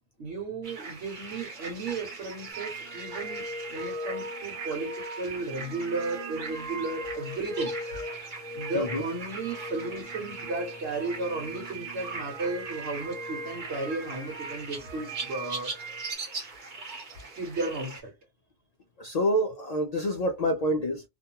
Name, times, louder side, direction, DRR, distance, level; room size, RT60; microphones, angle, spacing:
voice 1, 0.2-7.7 8.5-15.8 17.4-18.1 20.1-20.2, right 3 dB, 65° right, 1.2 m, -34 dB
sound 1, 0.6-18.0, right 3 dB, 45° right, 0.9 m, -41 dB
sound 2, 2.5-16.1, right 1 dB, 80° right, 1.2 m, -39 dB
voice 2, 19.0-21.0, equal, 90° left, 0.3 m, -27 dB
2.5 x 2.2 x 2.7 m
omnidirectional pair, 1.3 m